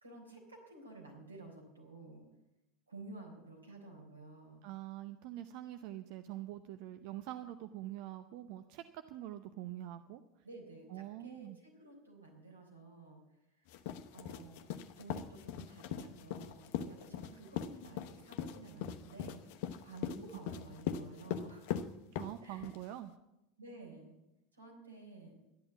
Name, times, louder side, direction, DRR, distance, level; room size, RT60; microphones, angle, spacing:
voice 1, 0.0-2.2 2.9-4.6 10.4-13.2 13.6-13.8 14.1-14.7 15.0-21.6 22.4-22.7 23.6-24.1 24.5-25.4, right 2 dB, 90° right, -1 dB, 3.9 m, -52 dB
voice 2, 4.6-10.2 10.9-11.6 22.1-23.1, right 13 dB, 55° right, 10 dB, 0.6 m, -45 dB
sound 1, 13.7-22.8, left 9 dB, 60° left, 0.9 m, -40 dB
12.5 x 11.0 x 7.1 m, 0.90 s
figure-of-eight pair, 75°, 0 cm